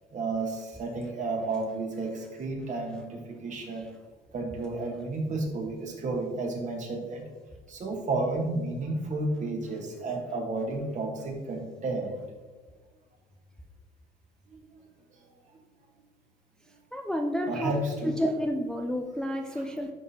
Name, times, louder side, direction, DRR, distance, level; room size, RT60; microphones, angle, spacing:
voice 1, 0.1-3.9 4.3-7.2 7.7-12.2 14.5-14.8 15.5-15.6 17.5-18.2 19.5-19.7, right 2 dB, 45° right, 2 dB, 1.4 m, -32 dB
voice 2, 16.9-17.7 18.0-19.9, equal, 5° left, 2 dB, 0.4 m, -30 dB
10.5 x 3.8 x 2.8 m, 1.3 s
cardioid pair, 110°, 17 cm